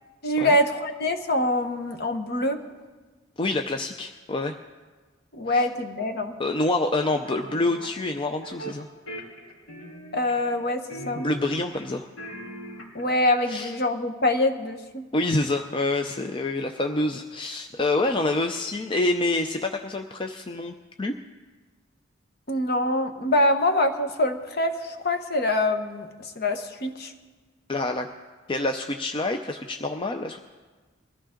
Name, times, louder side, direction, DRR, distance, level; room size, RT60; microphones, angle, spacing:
voice 1, 0.2-2.6 5.3-6.3 10.1-11.3 12.9-15.0 22.5-26.1 26.4-27.1, left 1 dB, 50° left, 6 dB, 1.2 m, -24 dB
voice 2, 3.4-4.6 5.5-5.7 6.4-8.9 11.2-12.1 13.5-13.7 15.1-21.2 27.7-28.1 28.5-30.4, left 2 dB, 25° left, 5 dB, 0.5 m, -27 dB
sound 1, 7.2-7.9 8.4-8.8 9.1-10.6 10.9-11.9 12.2-13.1, right 1 dB, 85° left, 3.1 m, -40 dB
22.0 x 14.0 x 3.8 m, 1.3 s
head